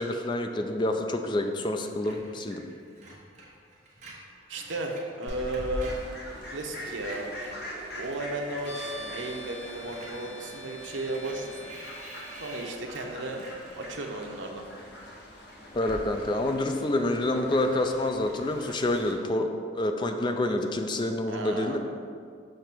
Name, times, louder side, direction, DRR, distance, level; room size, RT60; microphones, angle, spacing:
voice 1, 0.0-2.6 15.7-21.8, left 1 dB, 25° left, 5 dB, 0.4 m, -28 dB
Screech, 2.0-6.7 7.0-14.4, right 2 dB, 40° right, 1.2 m, -49 dB
voice 2, 4.5-6.0 6.5-7.4 7.7-11.6 12.4-14.7 21.3-21.8, right 1 dB, 85° right, 2 dB, 0.8 m, -34 dB
Fowl, 5.3-19.1, equal, 60° left, 1.2 m, -43 dB
sound 1, 8.6-12.7, right 1 dB, 90° left, 0.9 m, -44 dB
6.6 x 3.3 x 6.0 m, 2.2 s
head